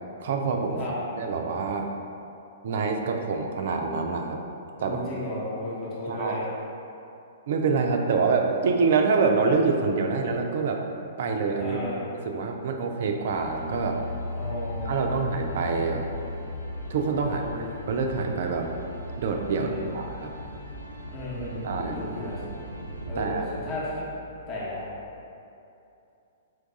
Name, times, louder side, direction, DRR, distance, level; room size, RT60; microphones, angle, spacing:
voice 1, 0.2-0.8 1.2-1.9 2.6-4.4 4.8-5.0 6.1-6.4 7.5-10.8 11.2-11.8 12.1-14.0 14.9-16.1 16.9-17.5 17.9-18.7 19.2-20.3 21.6-22.0 23.1-23.5, right 4 dB, 50° right, 3 dB, 0.4 m, -26 dB
voice 2, 4.8-6.5 11.6-12.0 14.3-15.2 17.3-17.7 19.5-19.8 21.1-22.5 23.1-24.0 24.5-24.9, left 1 dB, 30° left, -8 dB, 0.8 m, -34 dB
sound 1, 13.2-25.2, left 1 dB, 80° left, 0.8 m, -38 dB
4.5 x 2.3 x 3.7 m, 2.7 s
figure-of-eight pair, 110°, 0 cm